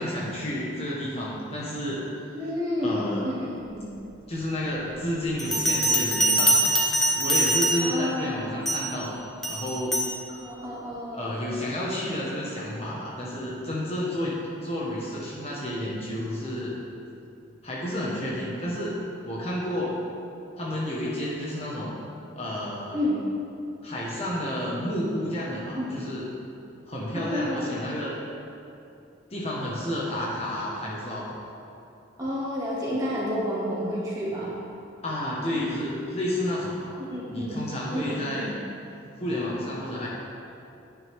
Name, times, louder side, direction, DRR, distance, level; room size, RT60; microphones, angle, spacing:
voice 1, 0.0-2.1 2.8-3.3 4.3-6.8 7.1-9.2 9.5-10.1 11.1-16.8 17.6-19.0 19.2-20.1 20.6-22.0 22.3-23.0 23.8-26.3 26.9-28.2 29.3-31.3 35.0-36.9 37.3-38.5 39.2-40.1, left 1 dB, 30° left, -6 dB, 1.3 m, -30 dB
voice 2, 2.3-3.9 7.8-8.4 10.3-11.3 22.9-23.2 25.8-26.0 27.1-27.7 32.2-34.5 37.0-37.6 37.9-38.5, left 1 dB, 20° right, -8 dB, 2.2 m, -30 dB
Bell, 5.4-8.1 8.7-9.0 9.4-10.2, right 1 dB, ahead, 1.0 m, -23 dB
9.9 x 9.7 x 3.6 m, 2.7 s
head